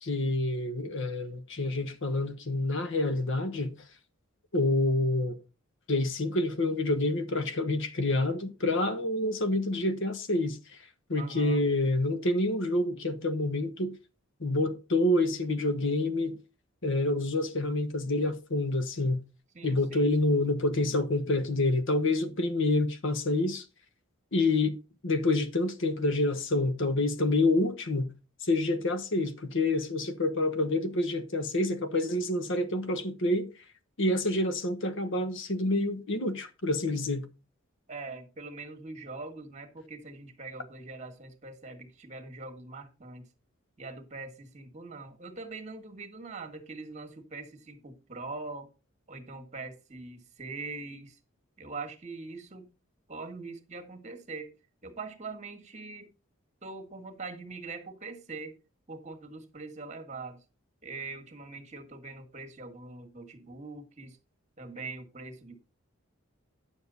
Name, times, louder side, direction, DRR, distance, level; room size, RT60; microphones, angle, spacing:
voice 1, 0.0-3.7 4.5-5.4 5.9-10.8 11.1-14.0 14.4-16.4 16.8-19.2 19.6-23.6 24.3-24.8 25.0-28.1 28.4-33.5 34.0-37.3, left 2 dB, 60° left, 1.1 m, -28 dB
voice 2, 11.2-11.6 19.5-20.1 37.9-43.3 43.8-48.7 49.1-51.2 51.6-52.7 53.1-54.5 54.8-56.1 56.6-58.5 58.9-60.4 60.8-64.2 64.6-65.6, right 3 dB, 35° right, 1.7 m, -42 dB
10.0 x 7.1 x 4.1 m
head